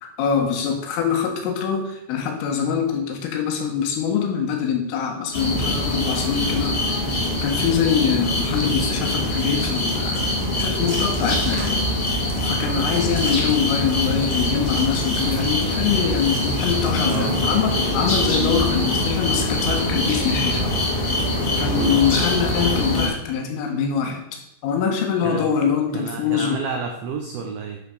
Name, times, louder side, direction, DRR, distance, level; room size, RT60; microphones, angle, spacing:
voice 1, 0.0-10.3 10.6-11.8 12.4-20.7 21.6-26.6, left 7 dB, 80° left, 3 dB, 4.3 m, -24 dB
sound 1, 5.3-23.1, left 1 dB, 40° left, 2.4 m, -23 dB
sound 2, 8.4-17.6, right 3 dB, 60° right, 1.5 m, -40 dB
voice 2, 25.9-27.8, right 6 dB, 90° right, 3 dB, 2.1 m, -29 dB
10.0 x 6.5 x 6.7 m, 0.84 s
omnidirectional pair, 5.8 m